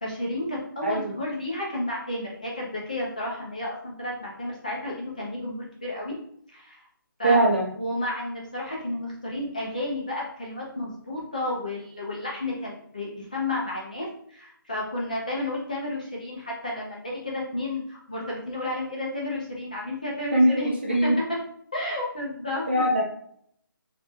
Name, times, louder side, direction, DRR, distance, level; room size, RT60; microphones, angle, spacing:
voice 1, 0.0-6.2 6.5-6.8 7.2-7.4 7.8-21.1 21.7-22.8, left 1 dB, 20° left, -4 dB, 0.4 m, -32 dB
voice 2, 0.8-1.1 7.2-7.7 20.3-21.2 22.7-23.0, right 1 dB, 30° right, 0 dB, 0.5 m, -21 dB
2.5 x 2.4 x 3.9 m, 0.65 s
hypercardioid pair, 175°, 12 cm